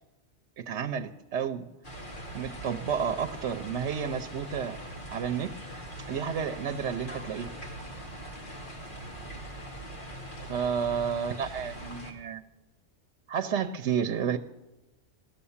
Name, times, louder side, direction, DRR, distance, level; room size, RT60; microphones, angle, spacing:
voice 1, 0.6-1.7 2.3-4.8 5.1-5.5 6.1-7.5 10.4-12.4 13.3-14.4, right 7 dB, 75° right, 8 dB, 1.0 m, -31 dB
sound 1, 1.8-12.1, right 1 dB, 45° left, 2.0 m, -42 dB
15.5 x 12.0 x 7.2 m, 1.0 s
omnidirectional pair, 1.2 m